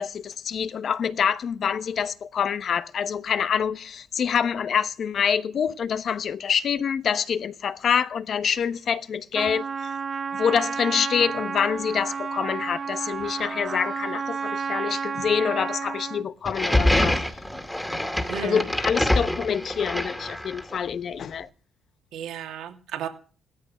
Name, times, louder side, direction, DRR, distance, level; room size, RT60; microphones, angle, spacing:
voice 1, 0.0-9.9 10.4-17.2 18.4-21.5, left 7 dB, 55° left, 1.0 m, -26 dB
Trumpet, 9.3-16.3, right 5 dB, 40° right, 1.1 m, -31 dB
sound 1, 16.4-20.8, left 1 dB, 5° left, 2.3 m, -25 dB
voice 2, 18.3-18.6 22.1-23.1, right 9 dB, 85° right, 2.6 m, -33 dB
16.5 x 13.5 x 6.2 m
cardioid pair, 90°, 0 cm